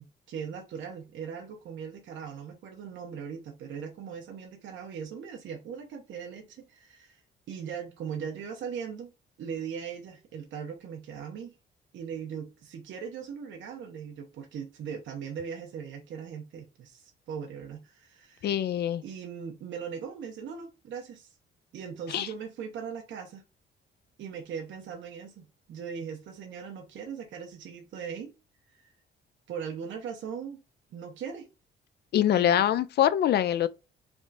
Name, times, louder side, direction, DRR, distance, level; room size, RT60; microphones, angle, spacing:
voice 1, 0.0-7.2 7.5-9.1 9.4-11.5 11.9-18.5 19.0-21.3 21.7-23.4 24.2-28.3 28.7-28.9 29.5-30.6 30.9-31.5 32.3-32.6, right 7 dB, 70° right, 0.9 m, -39 dB
voice 2, 18.4-19.0 22.1-22.3 32.1-33.7, left 11 dB, 55° left, 0.4 m, -24 dB
3.5 x 2.3 x 4.0 m
cardioid pair, 90°, 20 cm